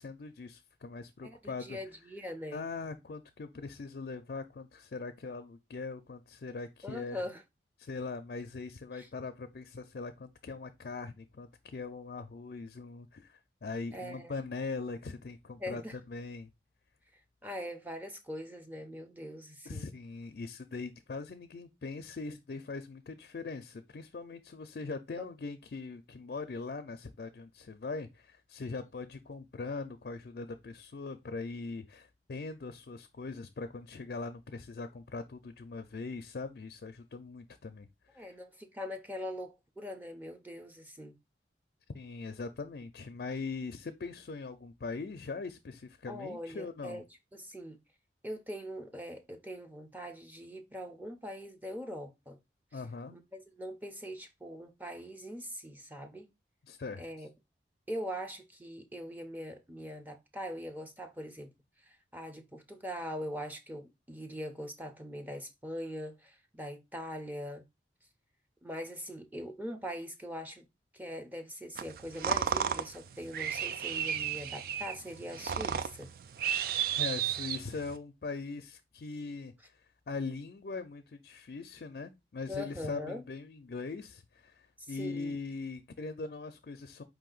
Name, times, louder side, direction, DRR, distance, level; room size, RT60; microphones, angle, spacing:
voice 1, 0.0-1.8 2.5-7.2 7.8-16.5 19.7-37.9 38.1-38.3 41.9-47.0 52.7-53.2 56.7-57.0 77.0-87.0, left 4 dB, 55° left, 0.4 m, -41 dB
voice 2, 1.2-2.6 6.8-7.4 8.9-9.1 13.9-14.4 15.6-16.0 17.1-19.9 25.2-25.3 38.2-41.2 46.1-47.0 47.3-47.8 48.2-52.4 52.7-52.8 53.1-56.3 57.0-57.3 57.9-61.5 61.8-67.6 68.6-70.7 70.9-76.1 82.5-83.2 84.8-85.4, equal, 10° right, 0.6 m, -42 dB
sound 1, 71.8-78.0, right 8 dB, 55° right, 0.3 m, -33 dB
4.8 x 2.8 x 3.8 m
head